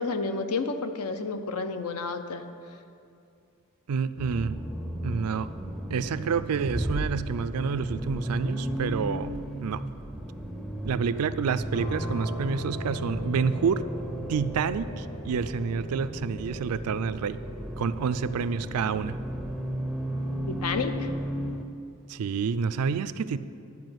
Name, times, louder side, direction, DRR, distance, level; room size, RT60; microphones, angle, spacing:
voice 1, 0.0-2.4 20.5-21.1, left 4 dB, 80° left, 9 dB, 0.7 m, -30 dB
voice 2, 3.9-4.5 5.0-5.5 5.9-9.8 10.8-13.8 14.3-17.4 17.8-19.2 22.1-23.4, right 6 dB, 80° right, 14 dB, 0.4 m, -28 dB
Accelerating revving vroom, 4.2-21.6, right 1 dB, ahead, 0.5 m, -35 dB
sound 1, 11.7-21.2, equal, 65° left, 1.5 m, -40 dB
11.0 x 4.8 x 7.8 m, 2.5 s
head